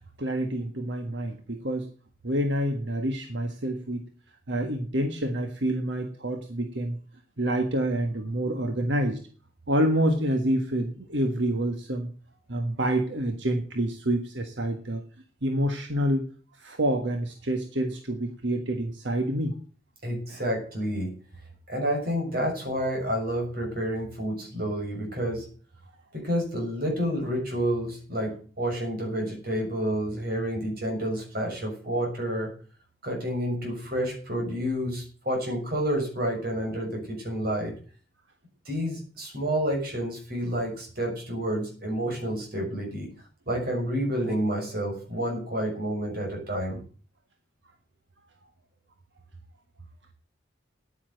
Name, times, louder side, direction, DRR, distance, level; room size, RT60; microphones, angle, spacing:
voice 1, 0.2-1.9 2.2-4.1 4.5-7.0 7.4-9.2 9.7-12.1 12.5-15.0 15.4-16.2 16.5-19.5, right 1 dB, 65° right, 6 dB, 1.5 m, -27 dB
voice 2, 20.0-21.1 21.7-25.5 26.1-32.5 33.0-37.7 38.6-43.1 43.5-46.8, equal, 50° right, 1 dB, 6.7 m, -29 dB
10.0 x 9.9 x 7.8 m, 0.41 s
head